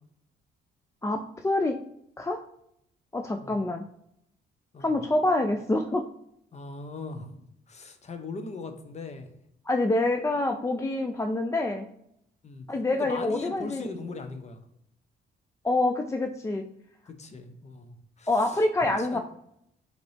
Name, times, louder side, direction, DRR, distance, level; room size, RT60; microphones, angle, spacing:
voice 1, 1.0-1.8 2.2-2.4 3.1-3.9 4.8-6.1 9.7-11.9 12.7-13.9 15.6-16.6 18.3-19.2, left 2 dB, 15° left, 5 dB, 0.3 m, -26 dB
voice 2, 6.5-7.4 7.7-9.3 12.4-12.6 12.9-14.6 17.1-19.2, left 3 dB, 35° left, 7 dB, 0.7 m, -39 dB
5.0 x 3.0 x 3.3 m, 0.75 s
cardioid pair, 90°, 20 cm